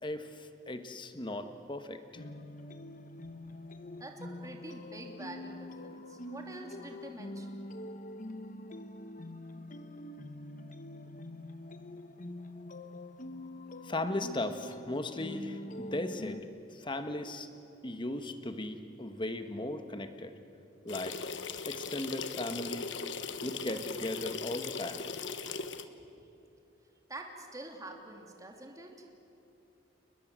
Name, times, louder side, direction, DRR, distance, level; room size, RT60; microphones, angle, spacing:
voice 1, 0.0-2.2 13.8-16.4 16.7-17.5 17.8-20.3 20.8-21.2 21.7-22.9 23.4-25.4, left 1 dB, 25° left, 8 dB, 1.4 m, -37 dB
sound 1, 2.1-16.4, left 1 dB, 45° left, 1.0 m, -45 dB
voice 2, 3.8-7.6 26.2-26.3 27.1-29.1, right 1 dB, 20° right, 2 dB, 2.8 m, -46 dB
sound 2, 20.9-25.8, left 5 dB, 75° left, 1.2 m, -39 dB
30.0 x 20.5 x 7.6 m, 2.9 s
head